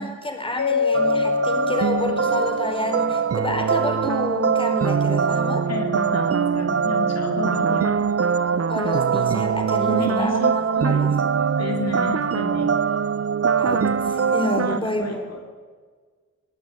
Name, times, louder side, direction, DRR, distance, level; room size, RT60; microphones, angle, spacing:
voice 1, 0.0-5.6 8.7-11.1 13.6-15.2, left 1 dB, 20° left, 4 dB, 4.7 m, -29 dB
Mallet percussion, 0.6-3.6, left 5 dB, 80° left, 2.6 m, -25 dB
sound 1, 0.9-14.8, right 6 dB, 55° right, 0.7 m, -22 dB
voice 2, 5.7-8.0 9.9-11.1 11.6-12.7 14.6-15.4, left 2 dB, 60° left, 2 dB, 3.2 m, -30 dB
22.5 x 20.0 x 9.9 m, 1.5 s
wide cardioid pair, 135°, 29 cm